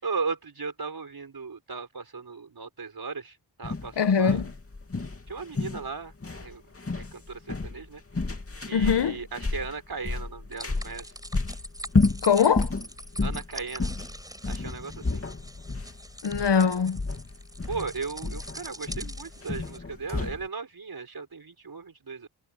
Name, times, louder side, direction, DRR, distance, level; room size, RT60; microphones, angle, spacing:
voice 1, 0.0-4.4 5.3-6.1 6.4-6.6 6.9-8.0 8.7-11.1 13.2-13.9 14.5-15.2 17.7-22.3, right 4 dB, 60° right, 5.5 m, -36 dB
sound 1, 3.6-20.5, left 3 dB, 35° left, 2.7 m, -31 dB
voice 2, 4.0-4.5 8.7-9.2 12.2-12.7 16.2-17.0, left 6 dB, 85° left, 1.2 m, -22 dB
sound 2, 10.5-19.8, right 1 dB, 10° right, 4.5 m, -43 dB
wide cardioid pair, 110°, 40 cm